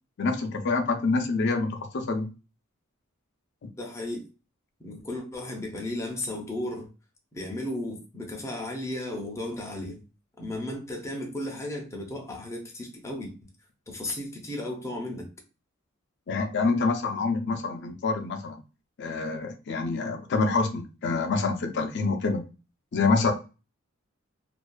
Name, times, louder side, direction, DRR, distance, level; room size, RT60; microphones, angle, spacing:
voice 1, 0.2-2.3 16.3-18.6 19.0-22.4 22.9-23.3, left 3 dB, 55° left, 0.5 m, -26 dB
voice 2, 3.8-4.2 4.8-6.9 7.3-10.0 10.4-13.5 13.9-15.3, left 1 dB, 15° left, 0.6 m, -34 dB
2.5 x 2.3 x 2.2 m
head